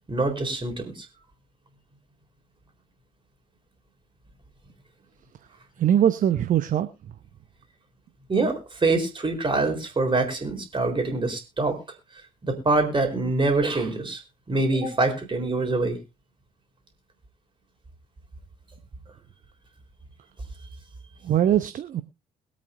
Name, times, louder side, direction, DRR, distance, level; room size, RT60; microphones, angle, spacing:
voice 1, 0.1-0.9 8.3-11.8 12.4-14.2 14.5-16.0, right 3 dB, 25° right, 4 dB, 4.0 m, -24 dB
voice 2, 5.8-6.9 21.2-22.0, right 10 dB, 45° right, 11 dB, 0.8 m, -21 dB
22.5 x 8.5 x 2.6 m, 0.26 s
figure-of-eight pair, 45°, 19 cm